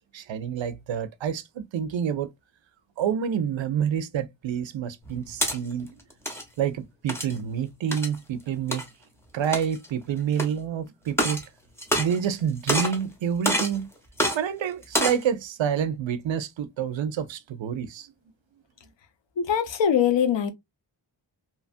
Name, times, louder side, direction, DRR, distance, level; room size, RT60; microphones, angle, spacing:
voice 1, 0.1-2.3 3.0-5.9 6.6-8.8 9.3-11.4 12.0-13.9 14.3-18.1, right 8 dB, 80° right, 0.5 m, -28 dB
sound 1, 5.0-5.6 6.1-6.4 7.1-7.4 7.9-8.2 8.7-8.8 9.4-9.9 10.4-10.5 11.1-11.5 11.8-12.4 12.7-13.0 13.4-13.8 14.2-14.4 14.8-15.2, equal, 5° left, 0.9 m, -26 dB
voice 2, 19.4-20.5, left 8 dB, 75° left, 0.7 m, -22 dB
2.8 x 2.3 x 2.4 m
wide cardioid pair, 65°, 45 cm